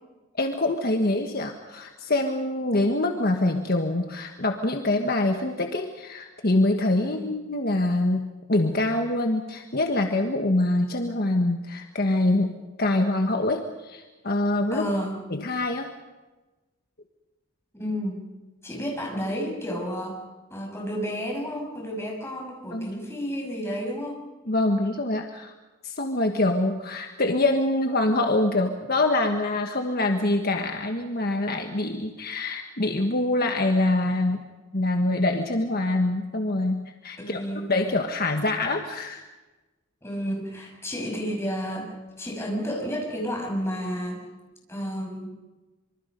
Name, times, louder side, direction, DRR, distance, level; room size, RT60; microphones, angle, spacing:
voice 1, 0.4-14.8 15.3-15.9 22.7-22.9 24.5-25.5 25.8-34.4 34.7-37.4 37.7-39.2, left 2 dB, 50° left, 4 dB, 1.5 m, -25 dB
voice 2, 7.0-7.3 14.7-15.2 17.7-18.3 18.6-20.2 20.5-24.2 37.2-37.7 40.0-44.2 44.7-45.3, equal, 15° left, -1 dB, 6.4 m, -31 dB
26.0 x 24.5 x 5.3 m, 1.2 s
head